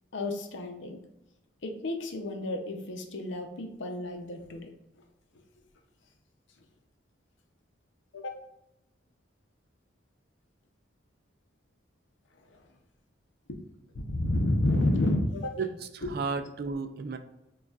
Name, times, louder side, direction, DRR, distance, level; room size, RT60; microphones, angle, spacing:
voice 1, 0.1-1.0 1.6-4.7 5.3-5.4 8.1-8.4 12.5-12.6 13.5-13.6 14.0-15.6 16.0-16.2, left 1 dB, 70° left, 4 dB, 0.6 m, -30 dB
voice 2, 15.6-17.2, right 4 dB, 50° right, 8 dB, 0.3 m, -33 dB
6.3 x 2.3 x 2.3 m, 0.92 s
head